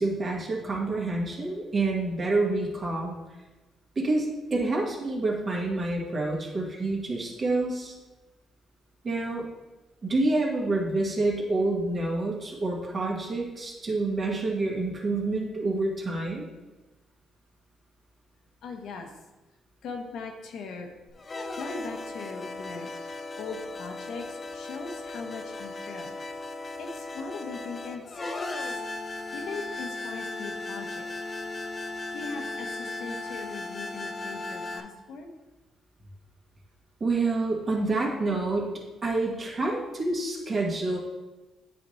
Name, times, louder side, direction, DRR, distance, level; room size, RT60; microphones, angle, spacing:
voice 1, 0.0-3.2 3.9-7.9 9.0-9.4 10.0-16.5 37.0-38.7 39.0-41.0, right 2 dB, 40° right, -2 dB, 1.7 m, -28 dB
voice 2, 18.6-19.1 19.8-20.9 21.5-23.0 23.4-26.2 26.8-28.8 29.3-31.1 32.1-35.3, left 4 dB, 75° left, 3 dB, 1.1 m, -39 dB
sound 1, 21.1-34.8, left 2 dB, 35° left, 0.7 m, -37 dB
9.2 x 4.2 x 3.2 m, 1.1 s
cardioid pair, 90°, 0 cm